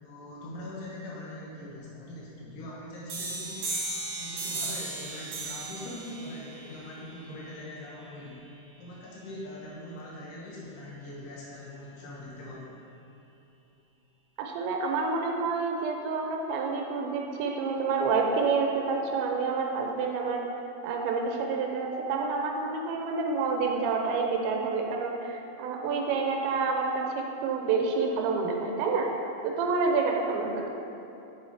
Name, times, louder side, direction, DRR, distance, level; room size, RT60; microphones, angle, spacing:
voice 1, 0.0-3.7 4.2-8.5 8.8-12.7, left 1 dB, 80° left, -6 dB, 1.9 m, -42 dB
sound 1, 3.1-8.5, right 2 dB, 65° right, 2.3 m, -37 dB
voice 2, 14.4-20.4 20.8-29.1 29.4-30.7, right 4 dB, 85° right, 1 dB, 2.9 m, -28 dB
6.2 x 5.7 x 4.5 m, 2.9 s
omnidirectional pair, 5.2 m